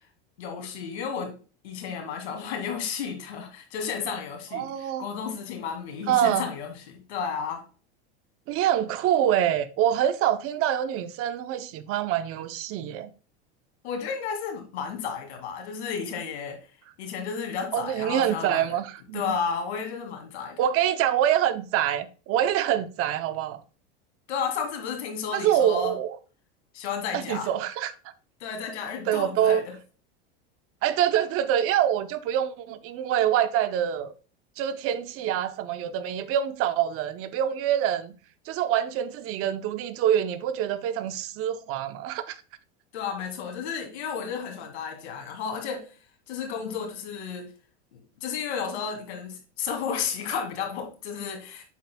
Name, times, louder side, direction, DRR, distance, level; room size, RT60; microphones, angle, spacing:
voice 1, 0.4-1.3 1.6-7.6 13.8-16.6 17.0-18.8 19.1-20.6 24.3-25.9 26.7-27.5 28.4-29.6 42.9-46.0 46.3-47.5 47.9-51.6, left 6 dB, 85° left, 2.2 m, -32 dB
voice 2, 4.5-5.1 6.1-6.4 8.5-13.1 17.7-19.4 20.6-23.6 25.3-26.2 27.1-27.9 29.1-29.6 30.8-34.1 34.6-38.1 38.5-42.4, right 10 dB, 45° right, 0.7 m, -25 dB
8.1 x 6.6 x 2.2 m
supercardioid pair, 120°, 32 cm